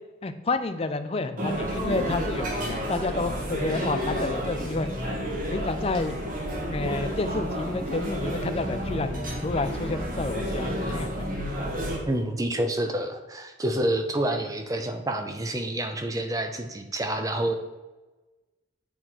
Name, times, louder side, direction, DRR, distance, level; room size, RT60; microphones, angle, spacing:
voice 1, 0.2-4.9 5.5-6.1 6.7-11.2, left 2 dB, 30° left, 9 dB, 0.4 m, -30 dB
sound 1, 1.4-12.0, equal, 45° right, 1.7 m, -30 dB
voice 2, 12.1-17.6, right 1 dB, 20° right, 6 dB, 0.6 m, -28 dB
8.7 x 4.2 x 4.4 m, 1.2 s
head